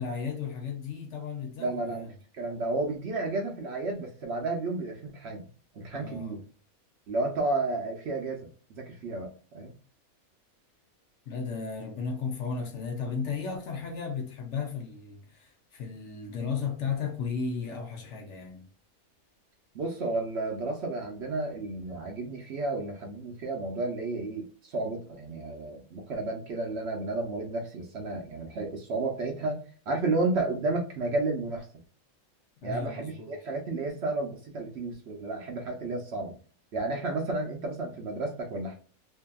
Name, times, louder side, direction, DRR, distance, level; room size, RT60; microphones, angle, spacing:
voice 1, 0.0-2.1 5.9-6.4 11.3-18.6 32.6-33.4, left 5 dB, 65° left, 0.9 m, -34 dB
voice 2, 1.6-2.1 2.3-5.5 5.7-6.4 7.1-9.7 19.7-31.7 32.6-36.3 36.7-38.7, right 2 dB, 60° right, 0.8 m, -32 dB
2.7 x 2.6 x 2.2 m
omnidirectional pair, 1.5 m